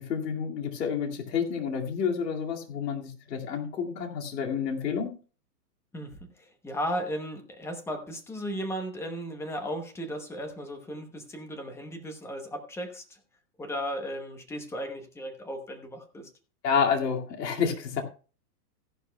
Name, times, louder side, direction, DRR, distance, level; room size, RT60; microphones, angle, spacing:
voice 1, 0.0-5.1 16.6-18.0, left 6 dB, 75° left, 2 dB, 2.4 m, -29 dB
voice 2, 5.9-13.2 13.6-16.3, equal, 5° left, 6 dB, 0.9 m, -36 dB
15.0 x 11.0 x 2.3 m, 0.37 s
hypercardioid pair, 150°, 49 cm